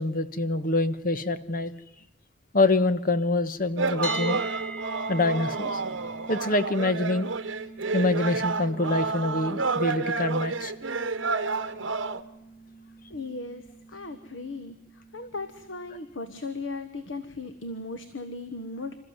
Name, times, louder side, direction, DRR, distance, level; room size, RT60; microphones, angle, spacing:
voice 1, 0.0-1.7 2.5-4.4 5.1-5.8 6.3-7.3 7.9-10.7, left 2 dB, 45° left, 12 dB, 1.2 m, -25 dB
sound 1, 3.8-12.2, right 4 dB, 75° right, 1.2 m, -30 dB
sound 2, 4.0-15.9, right 2 dB, 5° left, 2.7 m, -42 dB
voice 2, 13.1-19.0, left 3 dB, 75° left, 10 dB, 1.3 m, -37 dB
27.0 x 14.0 x 9.4 m, 0.87 s
head